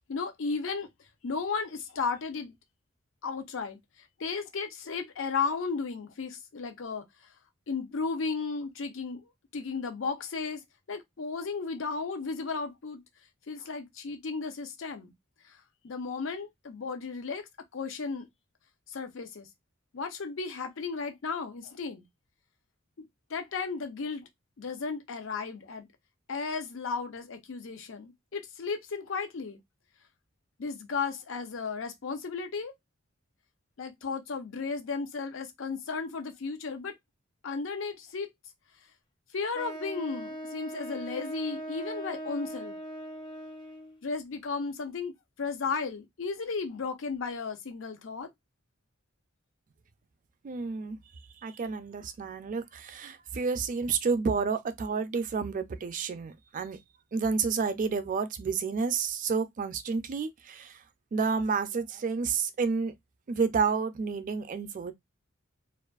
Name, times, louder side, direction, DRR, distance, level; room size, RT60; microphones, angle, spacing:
voice 1, 0.1-0.9 1.2-2.5 3.2-3.8 4.2-7.0 7.7-9.2 9.5-10.6 10.9-13.0 13.5-15.1 15.8-17.4 17.7-18.3 18.9-19.5 19.9-22.0 23.0-24.3 24.6-25.9 26.3-29.6 30.6-32.7 33.8-36.9 37.4-38.3 39.3-42.8 44.0-45.1 45.4-48.3, left 4 dB, 70° left, 0.6 m, -34 dB
Wind instrument woodwind instrument, 39.5-44.0, right 1 dB, 25° left, 0.4 m, -40 dB
voice 2, 50.4-51.0 51.4-56.8 57.1-60.8 61.1-62.9 63.3-64.9, right 5 dB, 40° right, 0.4 m, -30 dB
2.5 x 2.4 x 2.3 m
head